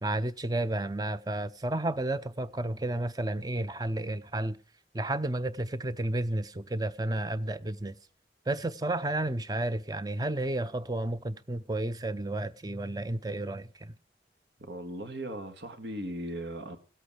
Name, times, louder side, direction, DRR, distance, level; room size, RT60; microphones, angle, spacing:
voice 1, 0.0-4.6 4.9-8.0 8.5-14.0, right 1 dB, 20° right, 0.6 m, -32 dB
voice 2, 14.6-16.8, right 1 dB, 75° right, 2.0 m, -38 dB
17.0 x 8.5 x 4.9 m
head